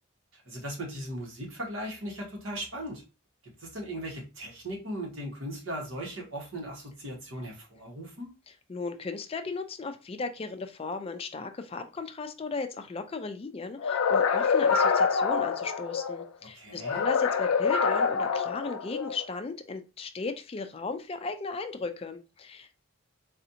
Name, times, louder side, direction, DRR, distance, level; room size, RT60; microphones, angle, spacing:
voice 1, 0.3-3.0 3.6-8.3 16.4-17.0, right 1 dB, 75° right, -1 dB, 1.4 m, -38 dB
voice 2, 8.7-22.9, left 4 dB, 25° left, 7 dB, 0.3 m, -36 dB
sound 1, 13.8-16.2 16.8-19.2, left 5 dB, 90° left, 0.4 m, -26 dB
4.1 x 2.5 x 2.8 m, 0.30 s
head